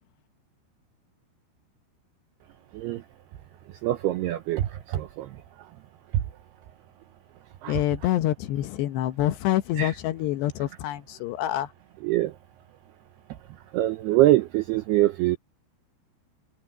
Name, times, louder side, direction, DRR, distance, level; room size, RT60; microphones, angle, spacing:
voice 1, 3.8-5.4 7.6-7.8 9.8-9.9 12.0-12.3 13.7-15.4, right 15 dB, 90° right, 2.3 m, -24 dB
voice 2, 7.7-11.7, left 13 dB, 75° left, 2.7 m, -26 dB
omnidirectional pair, 5.7 m